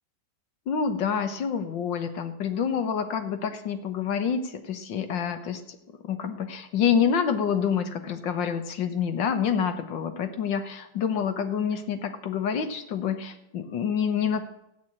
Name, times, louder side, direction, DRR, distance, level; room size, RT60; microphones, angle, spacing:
voice 1, 0.7-5.6 5.9-14.5, left 7 dB, 70° left, 8 dB, 1.8 m, -27 dB
14.0 x 8.4 x 8.6 m, 0.84 s
omnidirectional pair, 2.1 m